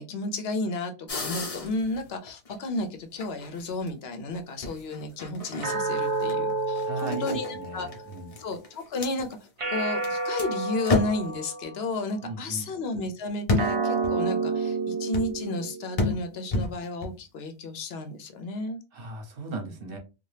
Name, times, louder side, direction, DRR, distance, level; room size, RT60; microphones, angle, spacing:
voice 1, 0.0-8.0 8.4-9.4 9.7-18.8, left 2 dB, 75° left, 7 dB, 0.8 m, -33 dB
sound 1, 1.1-2.8 3.2-3.9 4.6-10.1 10.4-10.5 10.8-11.4 13.5-14.1 15.1-15.4 16.0-17.1, left 2 dB, 40° left, 0.7 m, -30 dB
sound 2, 5.6-8.2 9.6-12.1 13.6-16.2, right 3 dB, 40° right, 0.6 m, -30 dB
voice 2, 6.8-8.4 12.2-12.7 18.9-20.0, right 3 dB, 65° right, 3 dB, 1.0 m, -37 dB
2.7 x 2.3 x 3.2 m, 0.29 s
omnidirectional pair, 1.1 m